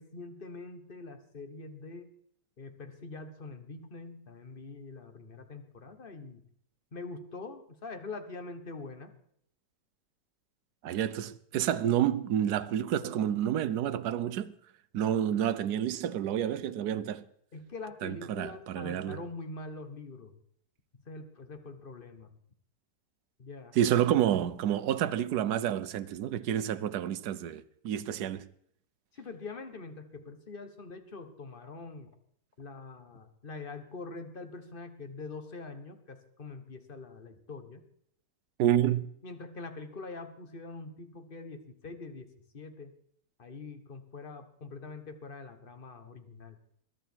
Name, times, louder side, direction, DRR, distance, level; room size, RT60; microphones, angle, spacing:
voice 1, 0.0-2.1 2.6-6.4 6.9-9.1 17.5-20.3 21.1-22.3 23.4-23.8 29.1-32.1 32.6-37.8 39.2-42.3 42.5-42.9 43.4-46.6, left 3 dB, 35° left, 1.6 m, -44 dB
voice 2, 10.8-14.5 14.9-17.2 18.0-19.2 23.7-28.5 38.6-39.1, right 10 dB, 75° right, 1.3 m, -29 dB
21.5 x 11.0 x 4.6 m
omnidirectional pair, 1.7 m